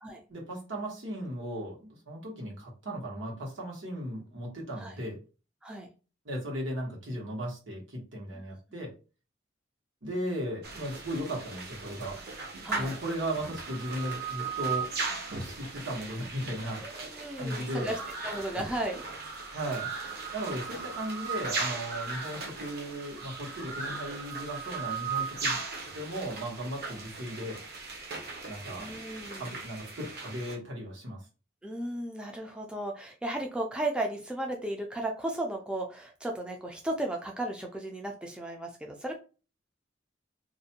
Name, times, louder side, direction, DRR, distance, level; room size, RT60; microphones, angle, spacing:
voice 1, 0.3-5.2 6.2-8.9 10.0-12.2 12.7-14.9 15.3-16.8 17.4-17.9 19.5-19.9 20.3-25.6 25.9-27.6 28.5-29.0 29.4-31.2, equal, 85° right, -1 dB, 1.1 m, -36 dB
sound 1, 10.6-30.5, right 4 dB, 55° right, 0.7 m, -37 dB
voice 2, 12.6-13.0 16.8-19.0 28.8-29.5 31.6-39.2, right 1 dB, 5° right, 1 dB, 0.3 m, -35 dB
2.4 x 2.1 x 2.7 m, 0.34 s
head